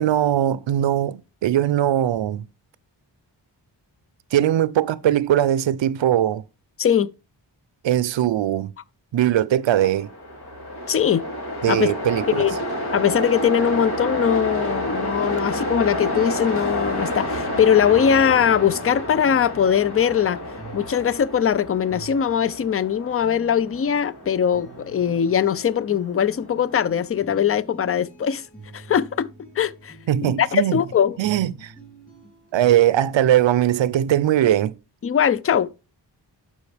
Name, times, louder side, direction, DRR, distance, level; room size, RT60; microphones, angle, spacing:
voice 1, 0.0-2.4 4.3-6.4 7.8-8.7 9.1-10.1 11.6-12.4 30.1-30.8 31.2-31.7 32.5-34.7, right 11 dB, 90° right, 0.6 m, -20 dB
Train, 9.8-27.0, equal, 60° left, 2.7 m, -30 dB
voice 2, 10.9-11.2 11.7-11.9 12.3-12.6 12.9-20.4 20.7-28.4 28.7-29.3 29.6-29.9 30.2-31.2 35.0-35.7, left 8 dB, 35° left, 0.4 m, -21 dB
sound 1, 15.4-32.9, right 3 dB, 20° left, 4.9 m, -46 dB
12.0 x 5.1 x 3.3 m
wide cardioid pair, 115°, 43 cm